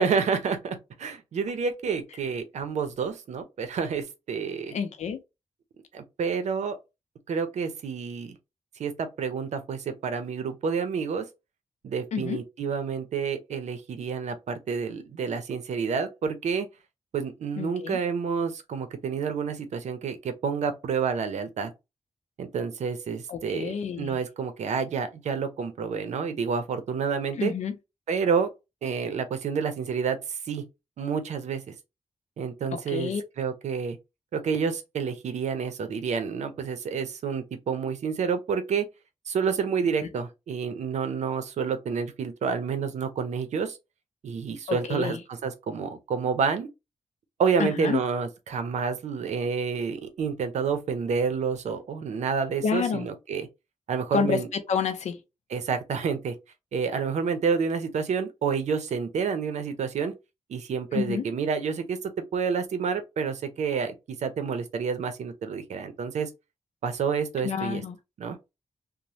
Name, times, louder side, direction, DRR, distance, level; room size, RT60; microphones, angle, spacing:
voice 1, 0.0-4.7 5.9-6.8 7.3-8.4 8.8-11.2 11.8-16.7 17.1-21.7 22.4-27.5 28.1-28.5 28.8-30.6 31.0-31.7 32.4-34.0 34.3-38.8 39.3-43.8 44.2-46.7 47.4-53.5 53.9-54.5 55.5-56.3 56.7-60.1 60.5-63.9 64.2-66.3 66.8-67.8 68.2-68.4, right 6 dB, 85° right, 0.6 m, -29 dB
voice 2, 4.7-5.2 12.1-12.4 17.6-18.0 23.3-24.2 27.4-27.7 32.7-33.2 44.7-45.2 47.6-48.0 52.6-53.1 54.1-55.2 60.9-61.2 67.4-68.0, left 6 dB, 85° left, 0.5 m, -29 dB
3.0 x 2.1 x 2.7 m
cardioid pair, 90°, 12 cm